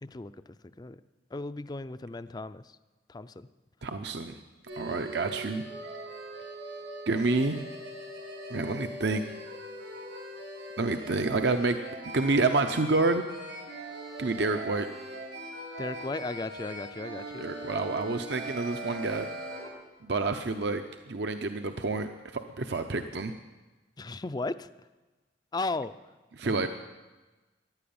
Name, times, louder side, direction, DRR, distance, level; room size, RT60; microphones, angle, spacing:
voice 1, 0.0-0.3 0.6-1.0 1.3-2.8 3.1-3.5 15.8-17.5 24.0-24.7 25.5-25.9 26.4-26.5, left 2 dB, 20° left, 13 dB, 0.4 m, -35 dB
voice 2, 3.8-4.3 4.8-5.7 7.1-7.6 8.5-9.2 10.8-11.8 12.0-13.2 14.2-14.9 17.4-19.3 20.0-23.3 26.4-26.7, right 3 dB, 60° right, 7 dB, 0.7 m, -28 dB
sound 1, 4.7-19.7, right 1 dB, 85° right, 6.9 m, -41 dB
14.5 x 10.5 x 8.7 m, 1.2 s
head